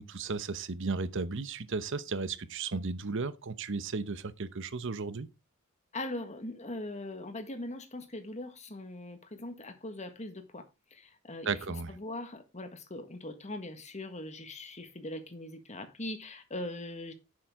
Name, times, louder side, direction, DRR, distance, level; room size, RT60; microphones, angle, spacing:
voice 1, 0.0-5.3 11.4-11.9, right 4 dB, 60° right, 0.9 m, -34 dB
voice 2, 5.9-10.6 10.9-11.6 11.9-17.1, left 1 dB, 35° left, 1.6 m, -41 dB
10.5 x 7.7 x 3.7 m
head